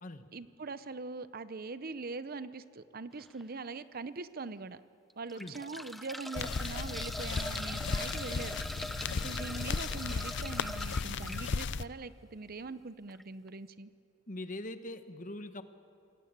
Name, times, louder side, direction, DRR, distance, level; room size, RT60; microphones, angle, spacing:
voice 1, 0.3-4.8 5.2-8.6 9.2-13.9, right 3 dB, 45° right, 14 dB, 0.7 m, -42 dB
sound 1, 3.2-3.4 4.1-4.2 5.1-11.5 13.1-13.2 13.5-13.6, equal, ahead, 0.6 m, -42 dB
sound 2, 6.3-11.8, left 5 dB, 60° left, 0.5 m, -35 dB
voice 2, 14.3-15.6, left 1 dB, 40° left, 9 dB, 1.2 m, -42 dB
27.5 x 19.5 x 8.8 m, 2.6 s
head